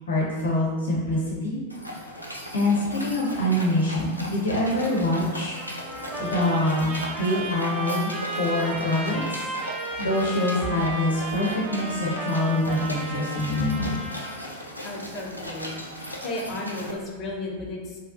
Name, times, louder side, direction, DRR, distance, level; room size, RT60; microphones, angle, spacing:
voice 1, 0.1-1.6 2.5-5.6 6.2-9.4 10.0-14.0, left 1 dB, 70° left, -4 dB, 0.8 m, -25 dB
sound 1, 1.7-16.9, equal, 90° left, 0.4 m, -38 dB
Trumpet, 5.6-14.5, right 2 dB, 20° right, 0.6 m, -34 dB
voice 2, 14.8-18.0, left 2 dB, 30° left, -2 dB, 0.5 m, -34 dB
3.2 x 2.4 x 2.5 m, 1.3 s
figure-of-eight pair, 90°, 0 cm